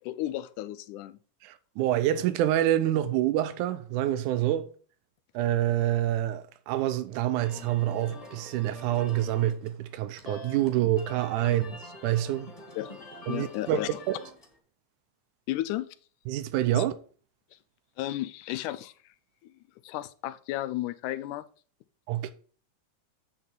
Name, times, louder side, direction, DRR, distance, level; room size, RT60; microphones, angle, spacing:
voice 1, 0.0-1.2 12.8-13.9 15.5-15.9 16.7-16.8 18.0-18.9 19.8-21.5, left 15 dB, 90° left, 2.1 m, -33 dB
voice 2, 1.4-4.7 5.3-12.6 13.3-14.2 16.3-16.9 22.1-22.3, right 13 dB, 85° right, 2.2 m, -27 dB
sound 1, 7.3-14.6, left 2 dB, 15° left, 1.2 m, -46 dB
8.6 x 4.0 x 6.1 m
omnidirectional pair, 3.5 m